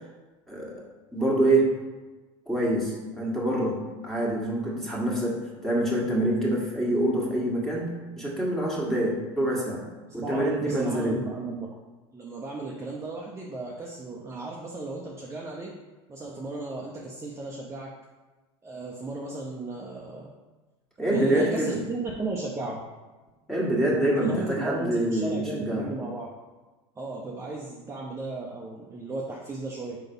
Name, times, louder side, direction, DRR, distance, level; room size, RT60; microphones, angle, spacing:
voice 1, 1.1-1.7 2.5-9.8 10.1-11.2 21.0-21.8 23.5-25.9, right 1 dB, 5° left, -4 dB, 1.8 m, -26 dB
voice 2, 10.2-11.7 12.1-15.7 16.1-17.9 18.6-20.3 21.1-22.8 24.2-26.3 27.0-30.0, right 2 dB, 20° right, -2 dB, 0.8 m, -35 dB
4.5 x 3.8 x 5.5 m, 1.2 s
hypercardioid pair, 95°, 15 cm